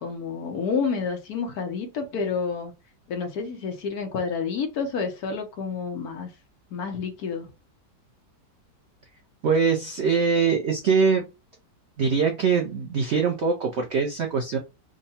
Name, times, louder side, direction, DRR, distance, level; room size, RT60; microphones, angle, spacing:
voice 1, 0.0-2.7 3.1-6.3 6.7-7.5, left 5 dB, 65° left, 1.2 m, -29 dB
voice 2, 9.4-11.3 12.0-14.6, right 5 dB, 80° right, 0.6 m, -23 dB
3.7 x 2.1 x 4.1 m
omnidirectional pair, 1.9 m